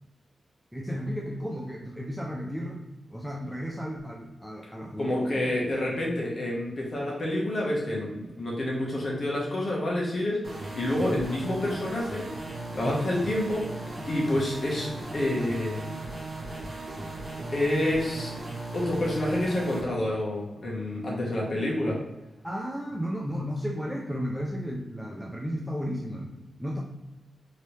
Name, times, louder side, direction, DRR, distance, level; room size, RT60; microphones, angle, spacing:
voice 1, 0.7-5.5 11.0-11.2 12.7-13.1 22.4-26.3 26.6-26.8, equal, ahead, -2 dB, 0.3 m, -34 dB
voice 2, 5.0-10.4 10.7-16.0 16.5-16.6 17.5-18.3 18.7-22.0, left 1 dB, 40° left, -3 dB, 0.9 m, -28 dB
sound 1, 10.4-19.8, right 2 dB, 35° right, 0.7 m, -37 dB
3.1 x 2.7 x 3.1 m, 1.0 s
wide cardioid pair, 170°, 0 cm